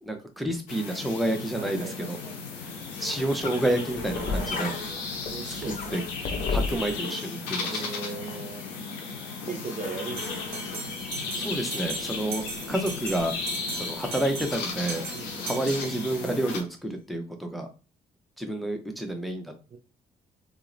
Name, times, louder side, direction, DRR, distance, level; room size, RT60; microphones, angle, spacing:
voice 1, 0.0-2.2 2.5-4.7 5.9-6.0 6.5-7.8 11.3-13.3 13.7-15.0 15.4-17.7 18.4-19.5, right 1 dB, ahead, 0.7 m, -29 dB
sound 1, 0.7-16.6, left 4 dB, 85° left, 0.5 m, -35 dB
voice 2, 1.6-2.6 4.1-4.8 5.3-6.1 6.4-6.6 7.7-8.7 9.4-10.6 15.1-15.5 19.7-19.8, right 4 dB, 35° right, 0.5 m, -39 dB
sound 2, 2.6-7.0, left 4 dB, 40° left, 0.6 m, -33 dB
Bell, 10.2-16.4, right 4 dB, 85° right, 0.7 m, -39 dB
2.9 x 2.0 x 2.5 m
hypercardioid pair, 45°, 21 cm